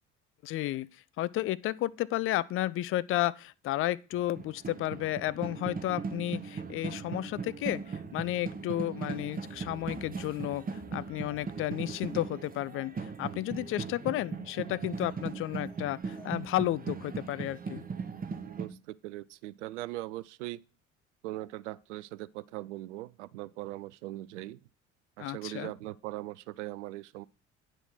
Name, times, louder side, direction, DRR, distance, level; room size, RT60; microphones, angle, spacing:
voice 1, 0.4-0.9 1.2-17.8 25.2-25.7, left 15 dB, 35° left, 0.5 m, -32 dB
sound 1, 4.1-18.7, right 5 dB, 25° right, 1.1 m, -39 dB
sound 2, 9.5-16.4, left 2 dB, 10° left, 3.6 m, -57 dB
voice 2, 18.4-20.6 21.2-24.6 25.2-27.3, right 17 dB, 65° right, 0.5 m, -40 dB
8.9 x 6.0 x 4.7 m
figure-of-eight pair, 55°, 38 cm